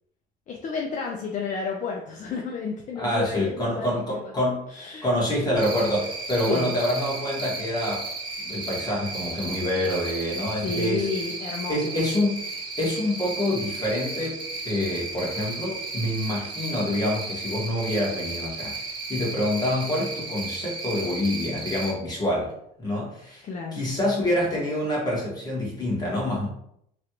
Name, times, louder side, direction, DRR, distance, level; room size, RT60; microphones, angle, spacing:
voice 1, 0.5-4.3 4.7-5.1 6.5-6.7 10.6-11.8 23.4-23.8, left 5 dB, 45° left, 0 dB, 0.5 m, -31 dB
voice 2, 2.9-8.1 8.4-11.1 11.7-12.4 12.8-18.7 19.1-22.5 22.8-23.4 23.7-26.5, left 1 dB, 25° left, -4 dB, 1.5 m, -26 dB
Cricket, 5.6-21.9, right 3 dB, 30° right, 0.8 m, -34 dB
3.2 x 2.5 x 2.9 m, 0.73 s
cardioid pair, 110°, 17 cm